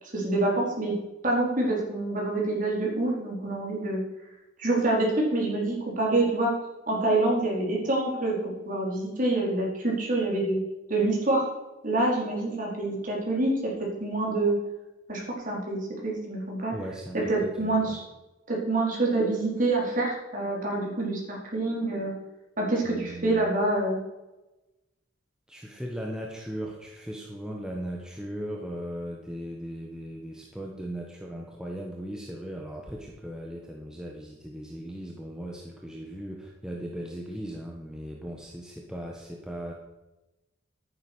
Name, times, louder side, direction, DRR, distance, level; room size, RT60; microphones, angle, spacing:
voice 1, 0.0-0.9 1.2-4.0 4.6-6.5 6.9-10.6 10.9-11.5 11.8-14.6 15.1-16.7 17.1-18.0 18.5-22.1 22.6-24.0, right 2 dB, 40° right, -2 dB, 4.5 m, -26 dB
voice 2, 16.7-18.0 22.8-23.5 25.5-39.7, equal, 5° right, -1 dB, 1.3 m, -38 dB
11.0 x 9.8 x 6.3 m, 1.0 s
head